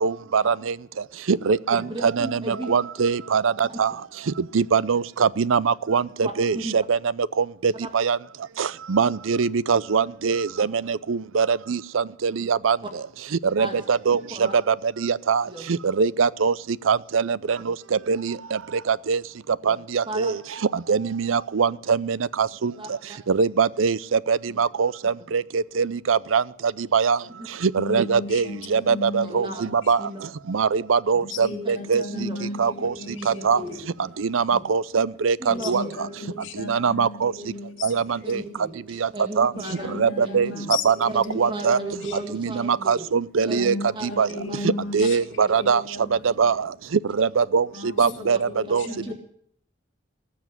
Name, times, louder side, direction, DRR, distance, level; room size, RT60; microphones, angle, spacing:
voice 1, 0.0-0.7 1.3-3.9 4.5-7.0 7.4-8.2 8.6-12.8 13.5-14.2 14.7-15.4 16.0-16.5 16.9-17.7 18.1-18.4 18.9-19.2 19.7-20.4 20.9-22.7 23.3-26.4 26.9-27.2 27.7-30.0 30.5-32.0 32.6-32.9 33.3-33.6 34.2-35.8 36.7-37.3 37.8-38.4 39.0-39.1 39.4-39.5 40.0-40.5 40.8-41.8 42.3-43.7 44.2-44.3 44.9-45.8 46.4-46.5 47.2-47.7 48.0-48.8, right 5 dB, 90° right, 20 dB, 0.5 m, -22 dB
voice 2, 1.8-2.7 6.2-6.8 13.6-13.8 14.4-14.5 15.5-15.6 19.7-19.8 20.1-20.4 22.8-23.2 25.2-25.3 28.9-29.6 30.0-30.2 31.6-32.4 33.1-33.8 34.5-34.6 35.4-35.9 38.2-40.7 41.1-43.1 43.5-43.6 43.9-44.8 48.0-48.1 48.9-49.1, right 1 dB, 25° right, 2 dB, 2.0 m, -35 dB
voice 3, 27.8-29.9 31.2-33.8 35.5-38.5 39.5-42.2 43.4-46.5 47.7-49.1, left 3 dB, 80° left, 0 dB, 2.6 m, -35 dB
19.0 x 7.3 x 9.5 m, 0.64 s
head